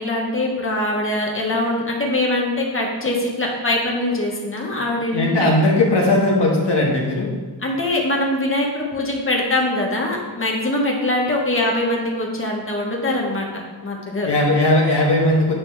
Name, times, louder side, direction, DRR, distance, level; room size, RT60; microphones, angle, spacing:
voice 1, 0.0-5.5 7.6-13.5 13.8-14.3, left 1 dB, 30° left, -2 dB, 1.5 m, -22 dB
voice 2, 5.1-7.3 14.2-15.5, left 2 dB, 65° left, -2 dB, 1.3 m, -18 dB
8.3 x 5.1 x 3.4 m, 1.5 s
wide cardioid pair, 75°, 45 cm